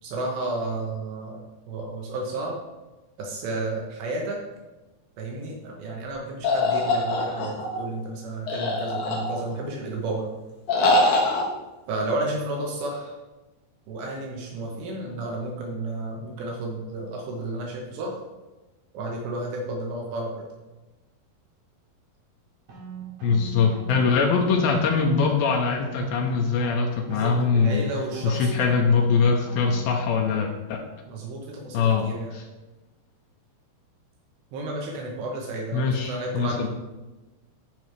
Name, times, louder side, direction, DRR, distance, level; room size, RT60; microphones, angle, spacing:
voice 1, 0.0-1.4 1.7-2.6 3.2-4.4 5.2-10.3 11.9-13.1 13.9-18.2 18.9-20.5 27.1-28.8 31.1-32.3 34.5-36.7, right 2 dB, 80° right, -1 dB, 3.3 m, -32 dB
sound 1, 6.4-7.8 8.5-9.6 10.7-11.4, left 2 dB, 60° left, 2.2 m, -23 dB
sound 2, 22.7-30.1, right 3 dB, 50° right, 2.8 m, -41 dB
voice 2, 23.2-27.8 28.2-30.8 31.7-32.4 35.7-36.7, left 5 dB, 80° left, 2 dB, 2.2 m, -22 dB
13.0 x 5.3 x 3.3 m, 1.1 s
omnidirectional pair, 4.9 m